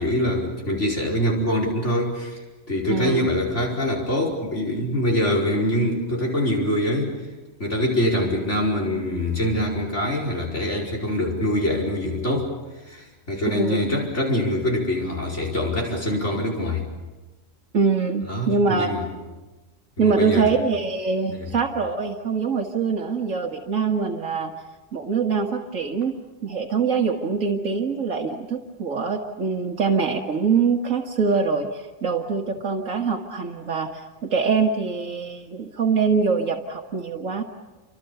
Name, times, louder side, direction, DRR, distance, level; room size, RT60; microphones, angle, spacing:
voice 1, 0.0-7.2 7.6-16.8 18.3-19.1 20.0-20.5 21.3-21.5, left 1 dB, 65° left, 0 dB, 5.3 m, -24 dB
voice 2, 2.9-3.3 13.6-13.8 17.7-18.9 20.0-24.5 24.9-26.1 26.4-37.4, right 5 dB, 80° right, 2 dB, 2.0 m, -24 dB
29.5 x 26.0 x 6.9 m, 1.2 s
omnidirectional pair, 1.3 m